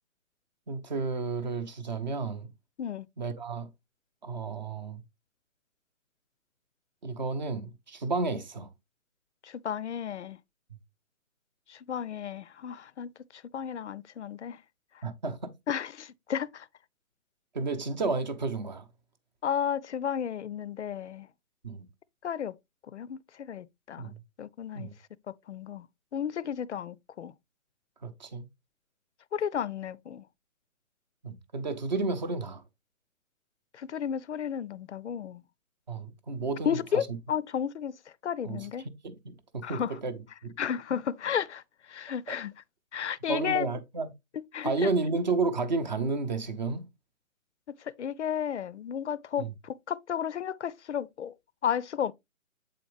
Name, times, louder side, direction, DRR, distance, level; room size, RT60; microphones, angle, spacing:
voice 1, 0.7-2.5 3.2-3.7 4.2-5.0 7.0-8.7 15.0-15.5 17.5-18.8 21.6-21.9 24.0-24.2 24.7-24.9 28.0-28.5 31.2-32.6 35.9-37.1 38.4-38.7 39.0-40.5 42.3-42.4 43.3-44.1 44.6-46.9 49.4-49.5, right 4 dB, 35° right, 0.7 m, -32 dB
voice 2, 9.4-10.4 11.7-13.1 13.5-14.6 15.7-16.7 19.4-21.3 22.2-22.5 22.9-24.9 25.3-25.9 26.1-27.3 29.3-30.2 33.7-35.4 36.7-37.9 38.2-38.8 39.6-39.9 40.6-41.6 41.9-42.5 42.9-43.7 44.4-44.9 48.0-51.3 51.6-52.1, left 8 dB, 55° left, 0.5 m, -33 dB
7.8 x 4.3 x 3.1 m
hypercardioid pair, 165°, 42 cm